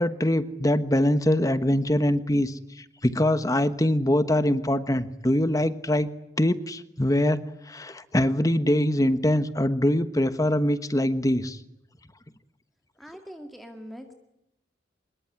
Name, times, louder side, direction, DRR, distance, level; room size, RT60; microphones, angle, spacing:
voice 1, 0.0-6.1 6.4-7.4 7.7-11.6, left 1 dB, 20° left, 12 dB, 1.2 m, -23 dB
voice 2, 13.0-14.1, equal, ahead, 4 dB, 2.0 m, -42 dB
25.0 x 21.5 x 9.7 m, 0.85 s
head